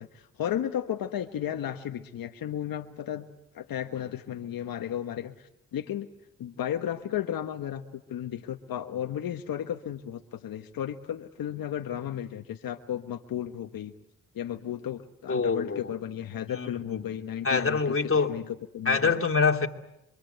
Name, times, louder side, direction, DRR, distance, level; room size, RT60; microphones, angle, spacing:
voice 1, 0.0-3.3 3.5-6.1 6.4-13.9 14.3-18.0 18.3-19.2, left 10 dB, 80° left, 1.4 m, -34 dB
voice 2, 15.3-15.9 16.5-17.1 17.4-18.4 18.8-19.7, left 4 dB, 40° left, 2.8 m, -25 dB
27.0 x 24.5 x 8.0 m
cardioid pair, 55°, 34 cm